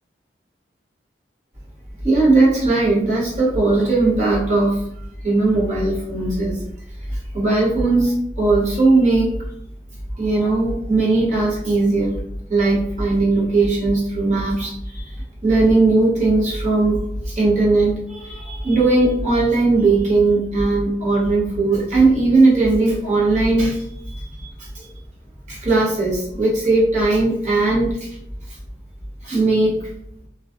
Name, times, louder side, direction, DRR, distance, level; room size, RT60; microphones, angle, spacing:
voice 1, 2.0-6.6 7.1-9.3 10.2-12.1 12.5-15.2 15.4-17.0 17.2-24.9 25.5-28.1 29.2-29.9, right 2 dB, 40° right, -6 dB, 0.9 m, -18 dB
2.3 x 2.3 x 2.4 m, 0.74 s
head